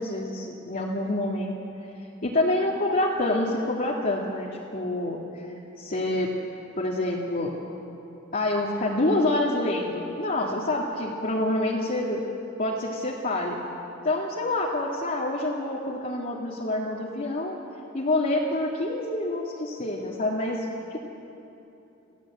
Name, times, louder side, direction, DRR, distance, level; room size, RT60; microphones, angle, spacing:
voice 1, 0.0-1.6 2.2-5.2 5.8-6.3 6.8-7.5 8.3-12.2 12.6-13.6 14.0-17.5 17.9-21.0, left 1 dB, 45° left, -4 dB, 2.1 m, -27 dB
28.0 x 15.5 x 8.5 m, 3.0 s
head